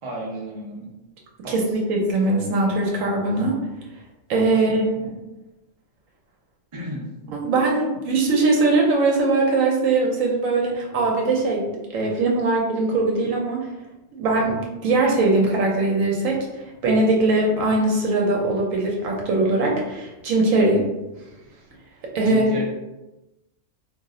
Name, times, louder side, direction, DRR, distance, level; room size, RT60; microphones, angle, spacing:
voice 1, 0.0-0.9 1.4-1.6 4.5-5.0 6.7-7.0 22.2-22.6, equal, 35° right, -3 dB, 0.6 m, -33 dB
voice 2, 1.5-3.6 4.3-4.8 7.3-11.7 11.9-13.7 14.1-20.8 22.1-22.5, right 2 dB, 80° right, -1 dB, 1.1 m, -21 dB
2.6 x 2.0 x 3.6 m, 1.0 s
omnidirectional pair, 1.4 m